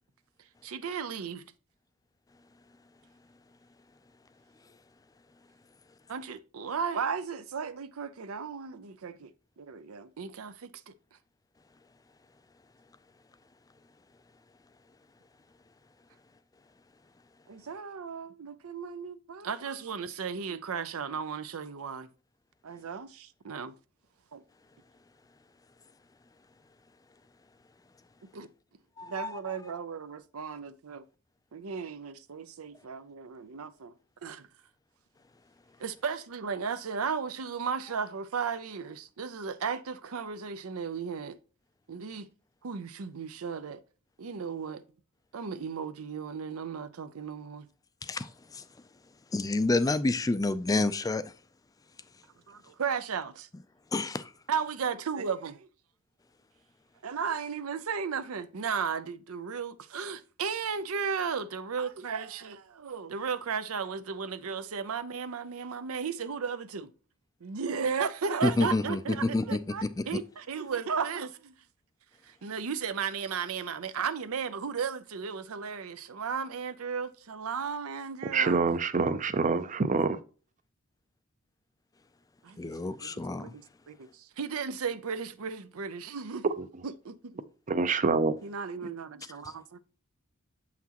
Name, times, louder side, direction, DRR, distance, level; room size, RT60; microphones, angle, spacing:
voice 1, 0.6-1.4 6.1-10.9 17.5-22.1 22.6-23.7 24.3-24.4 28.3-28.5 29.0-31.0 31.5-33.9 34.2-34.5 35.8-41.4 41.9-42.3 42.6-43.8 44.2-44.8 45.3-47.7 52.5-53.5 54.5-55.7 57.0-66.9 67.4-71.5 72.2-78.7 82.4-83.1 83.4-86.5 86.8-87.4 88.4-89.8, right 6 dB, 80° right, 0.6 m, -35 dB
voice 2, 29.0-29.4 48.0-48.6 49.3-51.3 53.9-54.3 68.4-70.2 82.6-83.5 89.4-89.5, left 2 dB, 15° left, 0.4 m, -29 dB
voice 3, 78.3-80.2 87.7-88.3, right 4 dB, 35° right, 0.5 m, -26 dB
7.2 x 5.8 x 2.9 m
head